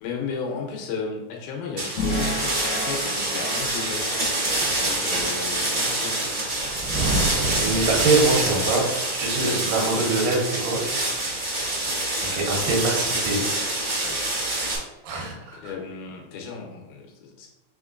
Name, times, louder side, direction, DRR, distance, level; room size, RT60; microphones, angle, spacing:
voice 1, 0.0-6.2 8.3-8.7 11.2-11.3 14.0-14.3 14.9-15.1 15.5-17.5, left 5 dB, 90° left, 1 dB, 2.4 m, -35 dB
sound 1, 1.8-14.8, right 2 dB, 45° right, 0.9 m, -26 dB
sound 2, 2.0-6.3, left 1 dB, 70° left, 1.4 m, -32 dB
Thunder, 6.4-8.9, right 2 dB, 90° right, 2.6 m, -29 dB
voice 2, 7.3-10.8 12.2-13.4 15.0-15.6, right 3 dB, 70° right, -2 dB, 2.6 m, -24 dB
5.7 x 3.6 x 2.5 m, 0.94 s
omnidirectional pair, 4.1 m